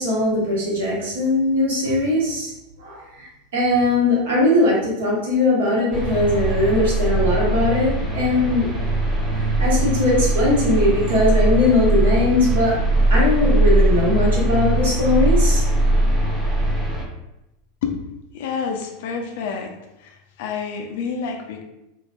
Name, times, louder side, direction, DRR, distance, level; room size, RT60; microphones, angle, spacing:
voice 1, 0.0-2.5 2.8-8.7 9.3-12.8 13.1-15.6, left 2 dB, 60° right, -4 dB, 1.1 m, -20 dB
sound 1, 5.9-17.0, right 1 dB, 10° right, 0.9 m, -20 dB
voice 2, 18.3-19.7 20.0-21.6, left 6 dB, 55° left, 3 dB, 0.5 m, -28 dB
3.6 x 2.6 x 2.5 m, 0.92 s
figure-of-eight pair, 85°, 0 cm